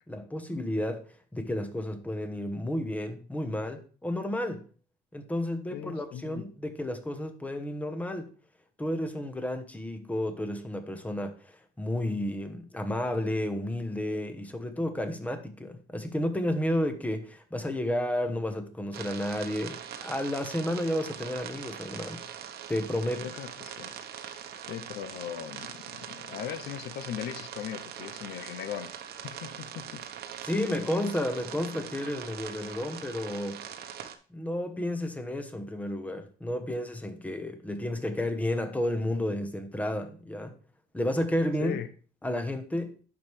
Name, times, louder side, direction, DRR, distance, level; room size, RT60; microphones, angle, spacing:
voice 1, 0.1-1.0 1.3-4.6 5.1-8.3 8.8-22.2 22.7-23.2 30.4-33.6 34.3-40.6 40.9-41.8 42.2-42.9, left 1 dB, 10° left, 1.1 m, -31 dB
voice 2, 5.7-6.5 23.2-23.9 24.7-28.9 29.2-30.0 41.6-41.9, left 10 dB, 75° left, 0.7 m, -39 dB
sound 1, 18.9-34.2, right 9 dB, 70° right, 1.0 m, -42 dB
11.0 x 4.7 x 3.3 m
cardioid pair, 110°, 17 cm